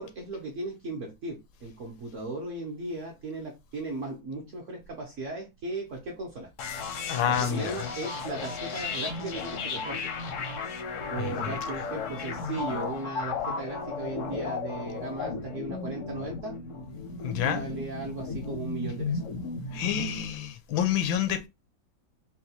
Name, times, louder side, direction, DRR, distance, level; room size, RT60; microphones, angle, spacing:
voice 1, 0.0-6.5 7.3-10.0 11.1-16.6 17.4-19.2, right 2 dB, 60° right, 0.8 m, -37 dB
sound 1, 6.6-20.2, left 4 dB, 60° left, 0.8 m, -35 dB
voice 2, 7.1-7.8 11.2-11.6 17.2-17.6 19.7-21.5, left 9 dB, 80° left, 1.4 m, -28 dB
4.1 x 2.3 x 2.8 m
omnidirectional pair, 2.1 m